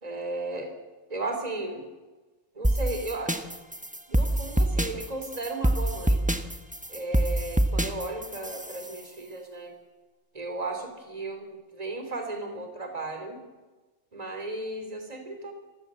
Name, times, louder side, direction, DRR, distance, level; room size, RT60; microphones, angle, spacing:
voice 1, 0.0-0.7 1.1-1.9 2.5-3.4 4.1-6.2 6.9-9.7 10.3-13.4 14.1-15.5, right 2 dB, 30° right, 5 dB, 3.3 m, -35 dB
sound 1, 2.6-9.0, right 1 dB, 5° right, 1.2 m, -26 dB
26.5 x 15.5 x 7.5 m, 1.2 s
omnidirectional pair, 1.3 m